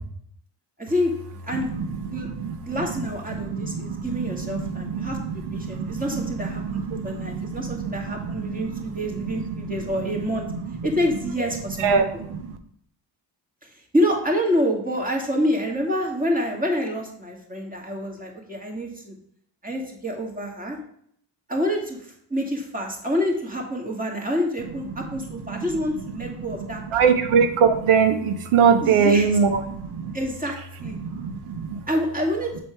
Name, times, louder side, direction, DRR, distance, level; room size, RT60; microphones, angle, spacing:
voice 1, 0.8-1.7 2.0-2.3 2.6-10.5 10.8-11.9 13.6-19.1 19.6-20.8 21.5-27.1 28.8-29.3 30.1-31.0 31.9-32.6, equal, 15° right, 0 dB, 2.1 m, -27 dB
voice 2, 2.1-2.5 3.5-8.0 8.4-8.8 11.8-12.4 26.9-30.1 30.9-31.8, right 6 dB, 80° right, 8 dB, 0.9 m, -23 dB
7.4 x 4.2 x 4.5 m, 0.68 s
supercardioid pair, 60°, 49 cm